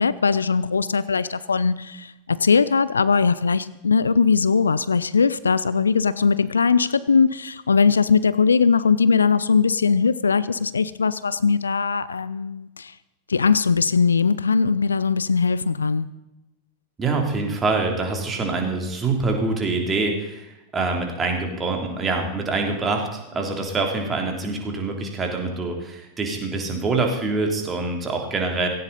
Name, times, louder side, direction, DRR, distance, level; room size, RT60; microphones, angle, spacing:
voice 1, 0.0-12.9 13.3-16.1, left 5 dB, 75° left, 17 dB, 0.5 m, -20 dB
voice 2, 17.0-28.7, right 3 dB, 20° right, 2 dB, 3.3 m, -25 dB
17.0 x 16.5 x 4.2 m, 0.99 s
figure-of-eight pair, 90°, 0 cm